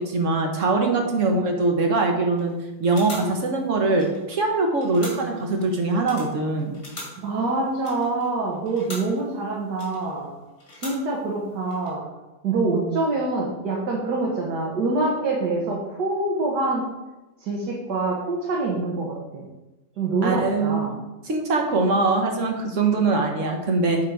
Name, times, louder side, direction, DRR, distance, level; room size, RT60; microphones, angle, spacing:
voice 1, 0.0-2.5 2.8-6.7 20.2-20.9 21.2-24.0, right 3 dB, 50° right, 3 dB, 1.2 m, -22 dB
sound 1, 2.4-2.6 2.8-4.5 4.7-5.5 6.0-9.3 9.7-10.3 10.6-11.4 11.6-11.9, left 2 dB, 40° left, 2.0 m, -41 dB
voice 2, 7.2-10.3 10.8-12.0 12.4-16.8 17.4-19.5 20.0-21.0, right 3 dB, 70° right, -3 dB, 1.7 m, -25 dB
7.8 x 4.3 x 4.7 m, 1.1 s
omnidirectional pair, 1.9 m